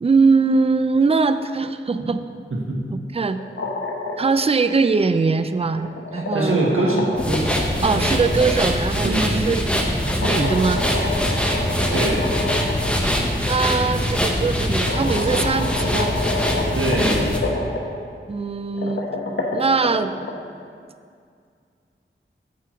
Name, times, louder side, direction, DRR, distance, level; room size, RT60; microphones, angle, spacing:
voice 1, 0.0-2.2 2.9-3.4 4.2-6.6 7.8-9.8 10.2-10.8 13.4-16.2 18.3-19.1 19.5-20.1, right 4 dB, 30° right, 11 dB, 0.4 m, -21 dB
voice 2, 2.5-2.8 6.1-7.6 8.0-8.2 9.0-9.5 11.9-12.3 16.7-17.3, right 2 dB, 75° right, -2 dB, 1.3 m, -23 dB
sound 1, 3.3-4.5 5.6-8.5 10.1-12.9 13.2-13.3 14.3-14.4 14.9-17.8 18.6-20.3, left 3 dB, 65° left, 1.1 m, -28 dB
sound 2, 7.2-17.4, equal, 5° left, 1.1 m, -23 dB
8.4 x 4.5 x 6.1 m, 2.2 s
wide cardioid pair, 40°, 21 cm